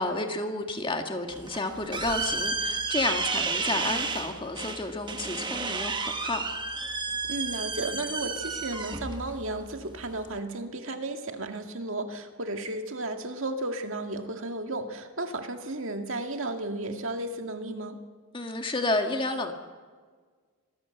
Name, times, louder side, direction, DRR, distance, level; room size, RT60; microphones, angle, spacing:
voice 1, 0.0-6.4 18.3-19.5, left 2 dB, 20° left, 4 dB, 1.7 m, -31 dB
sound 1, 1.3-10.4, right 4 dB, 20° right, 1.2 m, -32 dB
voice 2, 7.3-18.0, right 2 dB, 60° right, 5 dB, 2.2 m, -34 dB
26.0 x 17.5 x 7.9 m, 1.5 s
head